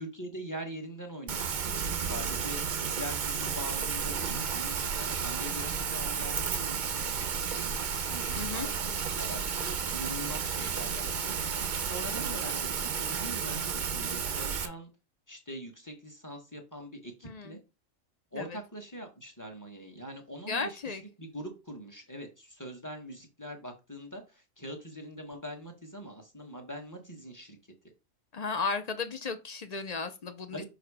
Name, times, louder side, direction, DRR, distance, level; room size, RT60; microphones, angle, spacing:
voice 1, 0.0-7.8 8.1-14.9 15.3-17.6 18.3-27.6 30.5-30.7, equal, 15° left, 1.2 m, -43 dB
Rain, 1.3-14.7, right 6 dB, 50° right, 0.6 m, -32 dB
voice 2, 8.4-8.7 17.2-17.6 18.3-18.5 20.5-21.0 28.3-30.6, left 4 dB, 45° left, 0.5 m, -34 dB
6.4 x 3.1 x 4.8 m
omnidirectional pair, 1.4 m